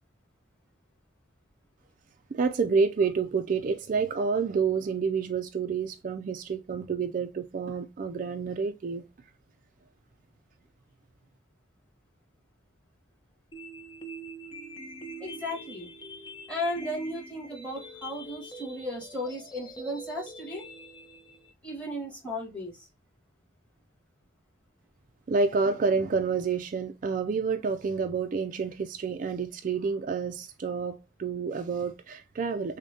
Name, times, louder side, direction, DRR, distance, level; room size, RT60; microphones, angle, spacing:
voice 1, 2.3-9.0 25.3-32.8, right 5 dB, 45° right, 0.3 m, -29 dB
sound 1, 13.5-21.5, right 1 dB, 25° left, 0.6 m, -44 dB
voice 2, 15.2-15.9 16.5-20.6 21.6-22.9, left 1 dB, 5° left, 1.6 m, -35 dB
6.2 x 2.2 x 2.7 m
head